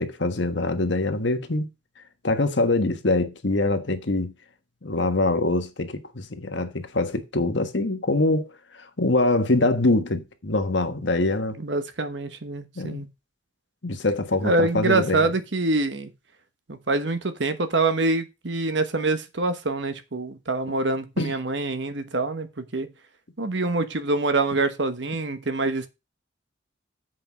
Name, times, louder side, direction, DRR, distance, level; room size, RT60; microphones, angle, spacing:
voice 1, 0.0-1.7 2.2-4.3 4.8-8.5 8.7-11.6 12.7-13.0 13.8-15.3 21.2-21.3, left 2 dB, 70° left, 1.4 m, -24 dB
voice 2, 11.6-13.1 14.4-16.1 16.7-22.9 23.4-25.9, right 2 dB, 70° right, 1.2 m, -25 dB
7.8 x 5.6 x 6.1 m
head